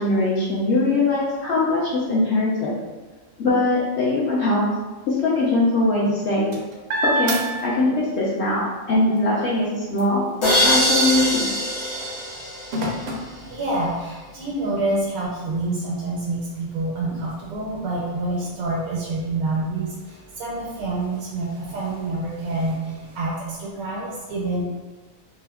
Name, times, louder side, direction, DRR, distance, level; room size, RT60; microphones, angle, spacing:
voice 1, 0.0-2.7 3.4-4.6 5.1-6.5 7.0-11.4, left 2 dB, 65° left, -6 dB, 0.8 m, -21 dB
sound 1, 6.0-8.3 8.8-14.2 14.8-14.9 15.3-23.3, right 1 dB, 65° right, 0.6 m, -34 dB
sound 2, 10.4-13.3, equal, 80° left, 1.4 m, -22 dB
voice 2, 13.5-24.6, right 2 dB, 85° right, -5 dB, 1.1 m, -27 dB
3.4 x 2.1 x 2.2 m, 1.2 s
omnidirectional pair, 1.5 m